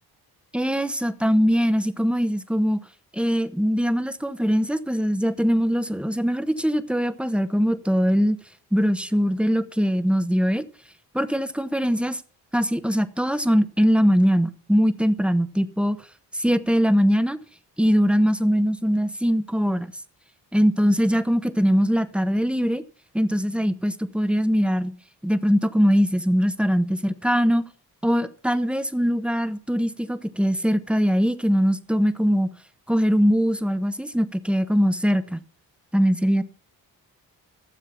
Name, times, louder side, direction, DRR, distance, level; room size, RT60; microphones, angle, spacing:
voice 1, 0.5-2.8 3.1-8.4 8.7-10.6 11.1-12.2 12.5-16.0 16.3-17.4 17.8-19.9 20.5-22.8 23.1-24.9 25.2-27.6 28.0-32.5 32.9-35.4 35.9-36.4, equal, ahead, 1.1 m, -21 dB
13.5 x 7.3 x 5.8 m
hypercardioid pair, 40°, 47 cm